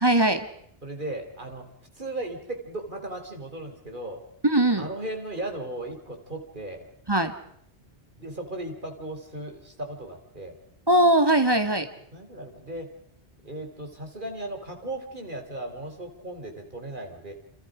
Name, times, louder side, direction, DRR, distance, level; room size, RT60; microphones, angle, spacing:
voice 1, 0.0-0.5 4.4-4.9 7.1-7.3 10.9-11.9, right 1 dB, 20° right, 7 dB, 1.9 m, -20 dB
voice 2, 0.8-1.7 2.0-4.3 4.8-6.9 8.2-10.6 12.1-12.9 13.4-17.3, right 1 dB, 45° right, 3 dB, 4.0 m, -36 dB
29.0 x 28.0 x 5.1 m, 0.69 s
omnidirectional pair, 1.2 m